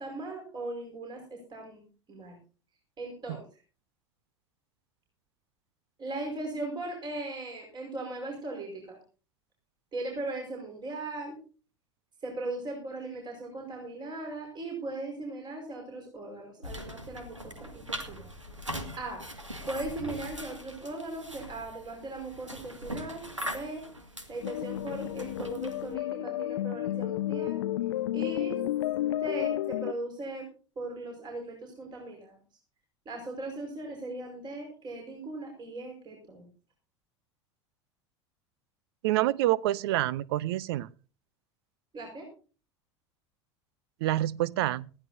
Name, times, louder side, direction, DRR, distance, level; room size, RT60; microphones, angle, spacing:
voice 1, 0.0-2.4 3.0-3.4 6.0-9.0 9.9-11.4 12.2-18.3 19.0-19.2 19.7-23.8 24.3-27.6 28.1-28.6 29.2-30.5 30.7-32.4 33.0-36.5 41.9-42.3, right 2 dB, 30° right, 1 dB, 5.0 m, -38 dB
sound 1, 16.6-25.9, equal, 90° right, 2.1 m, -41 dB
sound 2, 24.4-29.9, left 14 dB, 65° left, 0.5 m, -31 dB
voice 2, 39.0-40.9 44.0-44.9, right 15 dB, 55° right, 24 dB, 0.5 m, -27 dB
19.5 x 14.5 x 2.7 m, 0.37 s
figure-of-eight pair, 80°, 15 cm